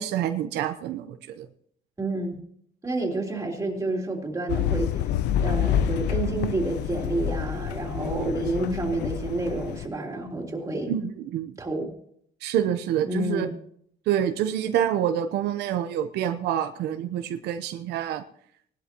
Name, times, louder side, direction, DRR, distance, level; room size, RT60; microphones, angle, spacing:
voice 1, 0.0-1.5 10.9-11.6 12.4-13.5 14.1-18.2, right 10 dB, 80° right, 6 dB, 0.9 m, -27 dB
voice 2, 2.0-2.4 2.8-4.9 5.4-10.9 11.6-11.8 13.1-13.5, right 2 dB, 20° right, 0 dB, 3.3 m, -29 dB
sound 1, 4.5-9.9, left 10 dB, 80° left, 0.6 m, -28 dB
19.5 x 11.5 x 3.0 m, 0.65 s
cardioid pair, 110°, 17 cm